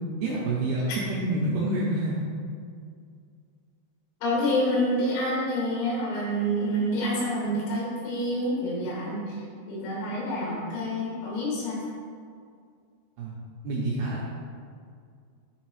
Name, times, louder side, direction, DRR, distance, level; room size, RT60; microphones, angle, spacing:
voice 1, 0.2-2.2 13.2-13.4 13.6-14.3, right 2 dB, 75° right, -6 dB, 2.4 m, -27 dB
voice 2, 4.2-9.4 9.7-11.8, equal, 90° left, -5 dB, 4.7 m, -27 dB
10.0 x 3.6 x 4.9 m, 2.2 s
omnidirectional pair, 5.6 m